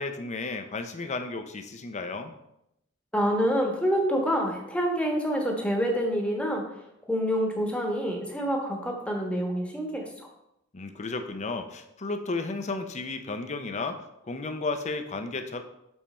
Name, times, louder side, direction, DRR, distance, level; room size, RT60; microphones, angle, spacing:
voice 1, 0.0-2.4 10.7-14.0 14.3-15.6, left 3 dB, 35° left, 7 dB, 0.6 m, -33 dB
voice 2, 3.1-6.7 7.1-10.1, equal, 5° left, 0 dB, 1.3 m, -27 dB
7.2 x 4.5 x 4.3 m, 0.82 s
head